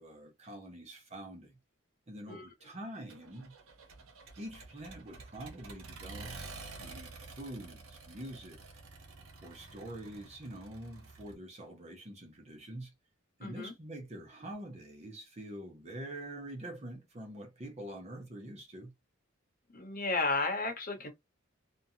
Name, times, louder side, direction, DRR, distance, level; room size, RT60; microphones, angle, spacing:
voice 1, 0.0-1.6 2.1-3.5 4.4-6.4 6.8-8.6 9.4-12.9 13.4-18.9, right 1 dB, 30° right, 0.7 m, -45 dB
Accelerating revving vroom, 3.1-11.4, right 3 dB, 80° right, 0.8 m, -49 dB
voice 2, 13.4-13.7 19.7-21.1, left 3 dB, 40° left, 1.0 m, -33 dB
2.8 x 2.3 x 2.7 m
head